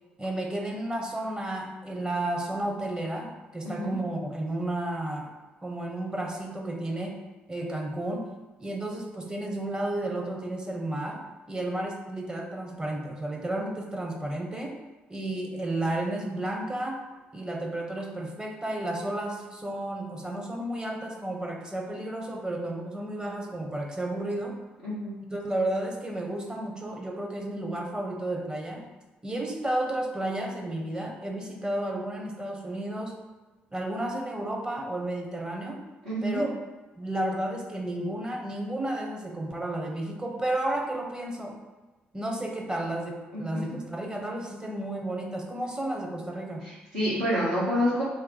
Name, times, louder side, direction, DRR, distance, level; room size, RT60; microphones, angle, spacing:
voice 1, 0.2-5.3 5.6-7.2 7.5-8.3 8.6-14.8 15.1-17.0 17.3-24.6 25.3-28.9 29.2-33.2 33.7-35.8 36.2-36.5 37.0-41.6 42.1-46.7, right 1 dB, 15° right, 1 dB, 0.6 m, -32 dB
voice 2, 24.8-25.2 36.0-36.4 43.3-43.4 46.6-48.0, equal, 85° right, -14 dB, 0.9 m, -27 dB
2.6 x 2.1 x 3.9 m, 1.2 s
figure-of-eight pair, 45°, 5 cm